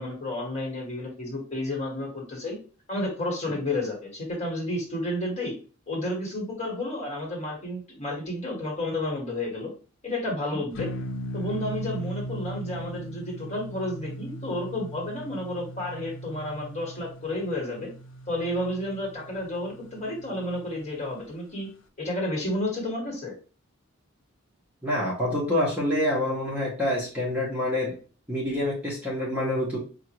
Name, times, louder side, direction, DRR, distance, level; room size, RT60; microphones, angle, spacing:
voice 1, 0.0-2.6 2.9-5.6 5.9-9.7 10.0-10.9 11.3-17.9 18.3-21.7 22.0-23.3, left 1 dB, 35° left, -1 dB, 1.4 m, -31 dB
sound 1, 10.8-21.3, equal, 60° left, 0.6 m, -39 dB
voice 2, 24.8-28.0 28.3-29.8, left 1 dB, 5° right, -5 dB, 1.0 m, -27 dB
5.1 x 2.4 x 2.9 m, 0.38 s
head